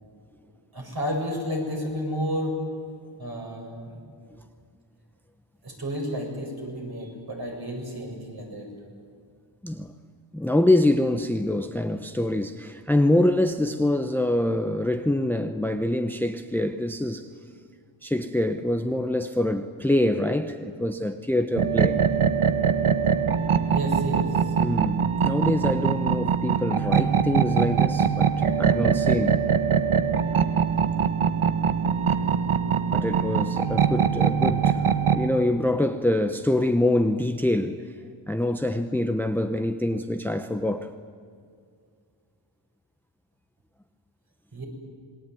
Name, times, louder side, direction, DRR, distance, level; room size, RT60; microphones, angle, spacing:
voice 1, 0.7-2.6 3.2-4.0 5.6-8.7 23.7-24.5 44.5-44.6, equal, 45° right, 7.4 m, -31 dB
voice 2, 10.3-17.3 18.0-22.0 24.6-28.3 28.6-29.4 32.9-34.8 35.1-37.8 38.3-40.9, left 1 dB, 5° left, 0.9 m, -25 dB
sound 1, 21.5-35.3, right 7 dB, 75° right, 1.5 m, -23 dB
27.5 x 21.0 x 9.4 m
wide cardioid pair, 125°, 50 cm